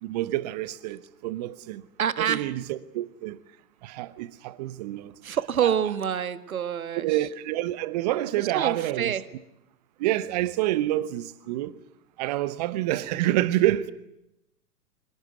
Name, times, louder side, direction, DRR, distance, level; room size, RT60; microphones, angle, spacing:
voice 1, 0.0-1.8 2.2-3.4 3.8-5.1 5.6-5.7 6.9-9.1 10.0-11.7 12.2-13.9, right 15 dB, 25° right, 1.0 m, -27 dB
voice 2, 2.0-2.5 5.2-7.2 8.5-9.2, right 9 dB, 60° right, 1.6 m, -27 dB
25.0 x 19.5 x 9.4 m
figure-of-eight pair, 125°, 48 cm